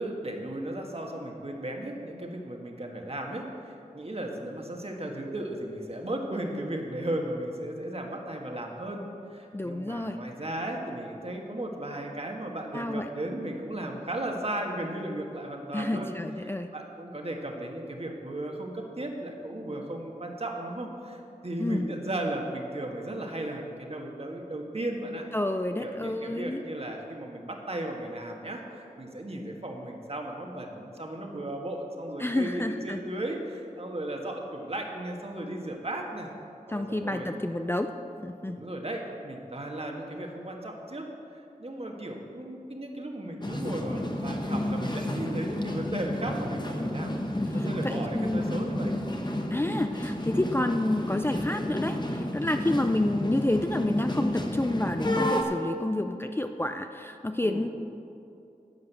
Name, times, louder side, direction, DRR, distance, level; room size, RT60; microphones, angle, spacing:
voice 1, 0.0-9.0 9.3-16.1 16.4-25.3 25.8-36.3 36.7-37.3 38.5-41.1 41.3-48.9 52.5-52.8 57.4-57.7, right 1 dB, 45° right, 1 dB, 1.6 m, -35 dB
voice 2, 9.5-10.2 12.7-13.1 15.7-16.7 21.6-21.9 25.3-26.6 32.2-33.0 36.7-37.9 38.2-38.6 47.5-48.7 49.5-57.7, left 1 dB, 15° left, 6 dB, 0.5 m, -29 dB
sound 1, 43.4-55.4, left 1 dB, 30° left, 1.2 m, -31 dB
10.5 x 8.3 x 6.9 m, 2.6 s
wide cardioid pair, 60°, 14 cm